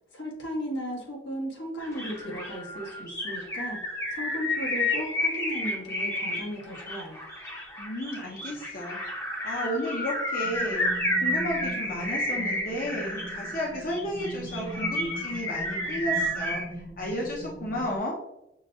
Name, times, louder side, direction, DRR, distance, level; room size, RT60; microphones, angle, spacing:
voice 1, 0.1-7.3, equal, 85° left, -2 dB, 1.3 m, -36 dB
sound 1, 1.8-16.6, left 1 dB, 15° left, 0.7 m, -31 dB
voice 2, 7.8-9.0 9.4-18.1, left 1 dB, 50° left, -3 dB, 0.7 m, -33 dB
sound 2, 10.4-18.0, right 2 dB, 20° right, 0.3 m, -40 dB
6.2 x 2.2 x 2.7 m, 0.84 s
head